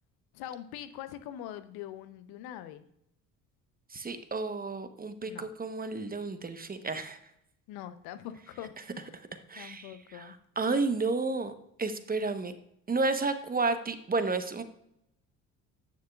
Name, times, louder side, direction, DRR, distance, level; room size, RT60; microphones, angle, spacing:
voice 1, 0.3-2.8 5.2-5.5 7.7-9.2 9.6-10.4, left 11 dB, 65° left, 11 dB, 0.8 m, -43 dB
voice 2, 3.9-7.2 9.1-11.5 11.8-12.5 12.9-14.6, right 3 dB, 20° right, 9 dB, 1.0 m, -31 dB
10.5 x 9.4 x 2.4 m, 0.76 s
hypercardioid pair, 60°, 40 cm